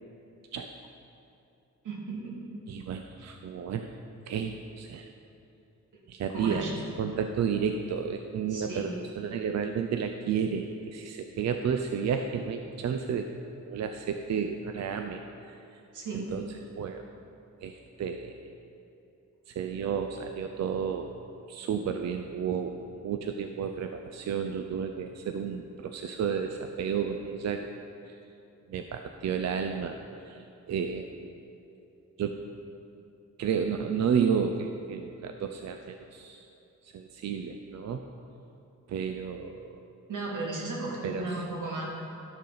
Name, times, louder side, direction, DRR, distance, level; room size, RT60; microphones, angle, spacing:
voice 1, 1.8-2.4 6.3-6.7 8.5-8.9 15.9-16.3 40.1-41.9, right 2 dB, 85° right, -2 dB, 1.8 m, -35 dB
voice 2, 2.7-3.9 4.3-5.1 6.1-6.7 7.0-13.3 13.7-15.6 16.1-16.5 16.8-17.0 17.6-18.4 19.5-21.1 21.5-27.8 28.1-28.2 28.7-30.0 30.3-31.1 32.2-32.4 33.4-36.5 36.8-38.0 38.9-39.8 41.0-41.4, right 7 dB, 60° right, 6 dB, 0.5 m, -32 dB
12.0 x 6.5 x 3.9 m, 2.8 s
wide cardioid pair, 115°, 30 cm